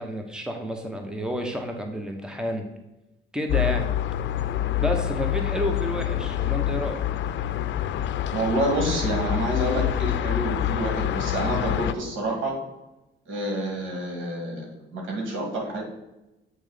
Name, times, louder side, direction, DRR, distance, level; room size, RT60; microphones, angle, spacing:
voice 1, 0.0-2.7 3.3-3.9 4.8-7.0, equal, 5° right, 4 dB, 1.0 m, -30 dB
sound 1, 3.5-11.9, left 12 dB, 70° left, 0.5 m, -26 dB
voice 2, 8.3-12.6 13.3-15.8, right 1 dB, 80° right, 0 dB, 2.5 m, -28 dB
7.9 x 3.5 x 5.0 m, 0.97 s
cardioid pair, 90°, 20 cm